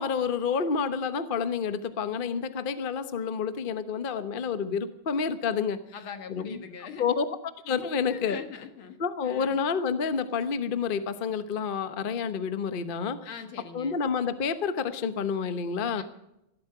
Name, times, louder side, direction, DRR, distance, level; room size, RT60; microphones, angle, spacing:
voice 1, 0.0-5.8 6.3-6.6 7.0-7.3 7.7-8.4 9.0-13.2 13.7-16.0, left 6 dB, 40° left, 11 dB, 0.8 m, -29 dB
voice 2, 5.9-7.0 7.7-9.0 9.2-9.6 13.2-14.0 16.0-16.1, left 6 dB, 75° left, 8 dB, 2.4 m, -42 dB
17.0 x 12.5 x 6.8 m, 0.86 s
omnidirectional pair, 2.3 m